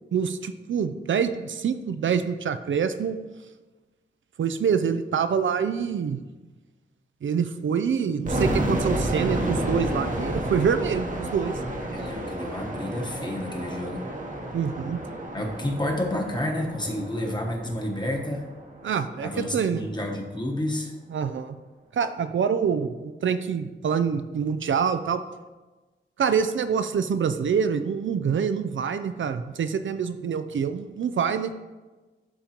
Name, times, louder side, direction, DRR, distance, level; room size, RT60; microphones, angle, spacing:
voice 1, 0.1-3.2 4.4-6.2 7.2-11.6 14.5-15.0 18.8-19.9 21.1-21.6 21.9-25.2 26.2-31.5, right 7 dB, 70° right, 10 dB, 0.4 m, -26 dB
sound 1, 8.3-19.1, right 1 dB, 40° right, 1.0 m, -31 dB
voice 2, 11.9-14.1 15.3-18.5 19.2-20.9, left 1 dB, 20° left, 1 dB, 1.1 m, -30 dB
11.5 x 3.8 x 2.9 m, 1.2 s
cardioid pair, 60°, 21 cm